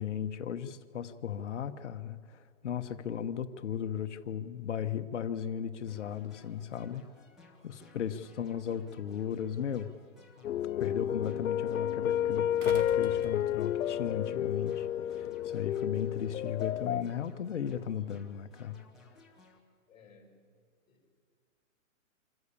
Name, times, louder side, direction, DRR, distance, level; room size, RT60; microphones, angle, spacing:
voice 1, 0.0-7.1 7.6-9.9 10.8-18.8, left 9 dB, 60° left, 10 dB, 1.1 m, -36 dB
sound 1, 5.9-19.6, left 3 dB, ahead, 0.9 m, -59 dB
voice 2, 8.0-8.8 19.9-20.3 20.9-21.0, left 2 dB, 20° left, -6 dB, 5.2 m, -58 dB
sound 2, 9.3-9.4 12.6-13.9 15.2-15.3, right 4 dB, 60° right, 1.6 m, -45 dB
sound 3, 10.4-17.0, left 10 dB, 90° left, 0.7 m, -31 dB
26.0 x 14.0 x 8.5 m, 2.1 s
hypercardioid pair, 170°, 40 cm